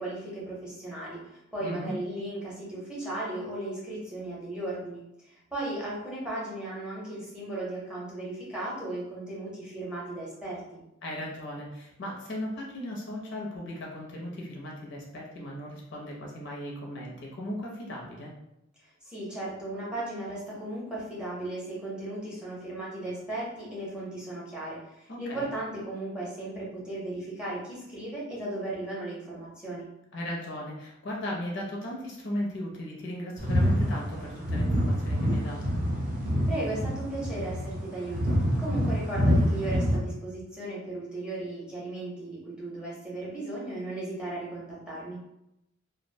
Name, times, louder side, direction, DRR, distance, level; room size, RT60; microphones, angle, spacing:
voice 1, 0.0-10.8 19.0-29.9 36.5-45.3, right 2 dB, 5° right, -6 dB, 0.6 m, -36 dB
voice 2, 1.6-1.9 11.0-18.3 25.1-25.5 30.1-35.8, left 1 dB, 60° left, -2 dB, 0.6 m, -37 dB
sound 1, 33.4-40.0, equal, 45° right, 0.6 m, -26 dB
2.4 x 2.0 x 2.6 m, 0.85 s
head